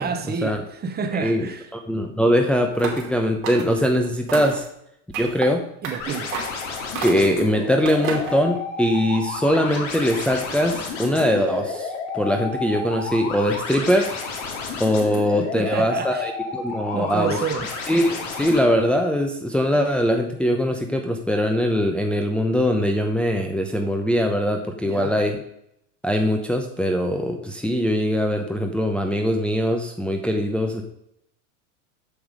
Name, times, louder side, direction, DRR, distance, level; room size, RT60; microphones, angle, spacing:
voice 1, 0.0-1.7 5.8-6.4 15.4-16.3 16.9-17.7 24.8-25.1, right 5 dB, 25° right, 7 dB, 1.0 m, -29 dB
voice 2, 1.1-4.7 5.2-5.6 7.0-14.1 14.8-17.4 17.9-25.4 26.0-30.8, equal, 5° left, 2 dB, 0.8 m, -22 dB
sound 1, 2.7-3.1 3.4-3.9 4.3-4.7 5.1-5.5 5.8-6.0 6.3-6.6 6.9-7.4 7.8-8.4, right 5 dB, 55° right, 3.1 m, -31 dB
sound 2, 6.0-18.6, left 4 dB, 80° left, 2.3 m, -31 dB
7.3 x 7.0 x 5.0 m, 0.75 s
supercardioid pair, 120°, 37 cm